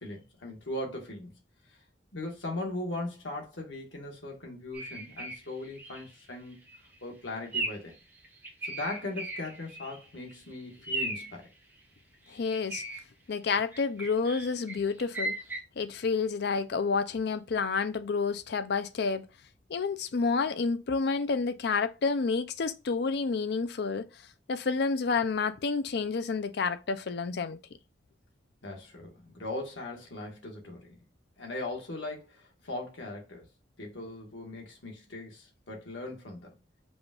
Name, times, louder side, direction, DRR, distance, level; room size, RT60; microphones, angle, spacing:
voice 1, 0.0-1.3 2.1-6.6 7.0-8.0 8.6-11.5 28.6-31.0 31.4-33.5 33.8-36.5, left 2 dB, 85° left, 1.5 m, -39 dB
sound 1, 4.7-5.4 5.8-6.1 6.5-6.8 7.5-7.9 8.2-10.0 10.3-10.4 10.8-11.3 12.3-13.0 13.7-15.6, right 2 dB, 10° right, 0.9 m, -36 dB
voice 2, 12.3-12.8 13.3-15.4 15.8-19.3 19.7-24.1 24.5-27.6, left 4 dB, 60° left, 0.5 m, -29 dB
4.9 x 2.4 x 3.6 m
head